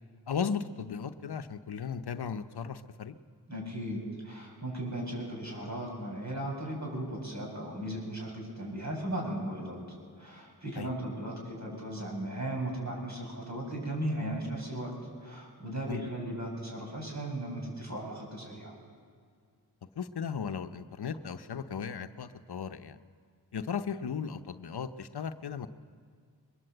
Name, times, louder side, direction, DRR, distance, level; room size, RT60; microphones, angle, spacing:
voice 1, 0.3-3.2 10.8-10.9 15.9-16.1 20.0-23.0 23.5-25.7, left 6 dB, 75° left, 10 dB, 0.8 m, -36 dB
voice 2, 3.5-4.0 4.2-9.8 10.2-14.9 15.2-18.8, right 1 dB, 45° right, -1 dB, 7.5 m, -36 dB
22.0 x 20.0 x 7.8 m, 2.1 s
cardioid pair, 45°, 40 cm